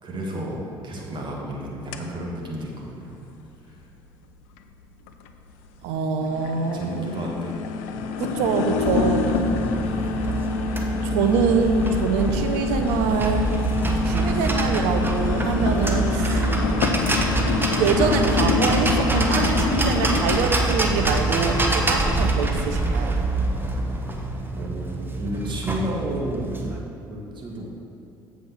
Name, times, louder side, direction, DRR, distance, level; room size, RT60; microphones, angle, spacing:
voice 1, 0.0-3.2 6.7-7.6 7.9-8.1 8.9-9.1 24.5-26.7 27.1-27.7, equal, 45° right, -2 dB, 2.0 m, -32 dB
sound 1, 1.9-2.0 2.5-2.6 3.3-3.4 4.6-4.7 5.1-5.7 6.0-20.5, left 5 dB, 75° left, 0.5 m, -26 dB
voice 2, 5.8-7.1 8.2-9.3 11.0-13.6 14.0-16.5 17.8-23.2, right 5 dB, 75° right, 6 dB, 0.7 m, -25 dB
sound 2, 8.8-26.8, right 2 dB, 20° right, 1.2 m, -25 dB
7.9 x 5.2 x 6.2 m, 2.8 s
hypercardioid pair, 60°, 11 cm